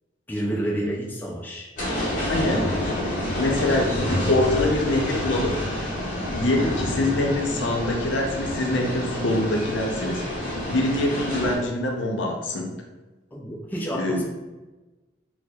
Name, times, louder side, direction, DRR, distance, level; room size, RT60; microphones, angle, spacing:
voice 1, 0.3-1.7 13.3-14.2, right 1 dB, 10° left, -4 dB, 0.4 m, -29 dB
sound 1, 1.8-11.6, left 1 dB, 45° left, 0.8 m, -28 dB
voice 2, 2.2-2.7 3.4-5.9 6.3-12.7 13.9-14.2, left 2 dB, 80° left, 1 dB, 0.6 m, -25 dB
4.2 x 2.0 x 2.3 m, 1.1 s
head